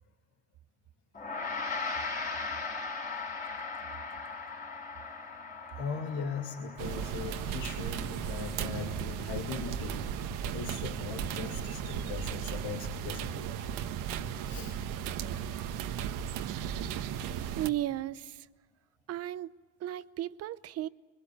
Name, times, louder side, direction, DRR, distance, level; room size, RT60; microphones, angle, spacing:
Gong, 1.1-10.7, left 4 dB, 25° left, 4.1 m, -39 dB
voice 1, 5.6-10.0 10.5-13.8 14.4-14.8, left 5 dB, 55° left, 2.7 m, -39 dB
sound 1, 6.8-17.7, right 9 dB, 65° right, 1.5 m, -36 dB
voice 2, 17.6-18.5 19.1-19.5 19.8-20.9, right 14 dB, 45° right, 0.8 m, -34 dB
26.0 x 24.5 x 8.0 m
cardioid pair, 125°, 35 cm